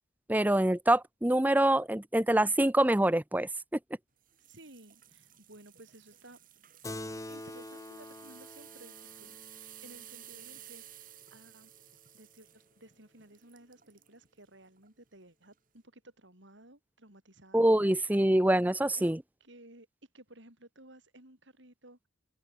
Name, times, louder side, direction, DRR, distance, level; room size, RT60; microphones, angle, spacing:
voice 1, 0.3-3.5 17.5-19.2, right 1 dB, 10° right, 0.7 m, -25 dB
sound 1, 4.3-14.2 14.7-14.9 15.4-15.5, right 13 dB, 45° right, 3.8 m, -54 dB
voice 2, 4.4-6.4 7.3-10.8 11.3-11.7 12.1-18.2 18.9-19.1 19.4-19.9 20.1-22.1, right 1 dB, 60° right, 5.8 m, -56 dB
Keyboard (musical), 6.8-11.7, left 1 dB, 15° left, 1.4 m, -46 dB
open air
head